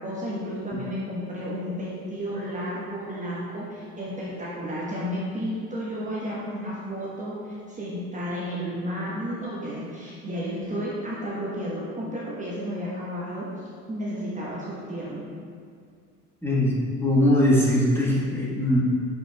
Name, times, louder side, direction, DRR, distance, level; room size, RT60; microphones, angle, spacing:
voice 1, 0.0-15.2, equal, 15° right, -7 dB, 1.2 m, -32 dB
voice 2, 16.4-16.8 17.0-18.8, left 1 dB, 5° left, -6 dB, 1.4 m, -21 dB
7.7 x 6.5 x 2.3 m, 2.2 s
figure-of-eight pair, 75°, 46 cm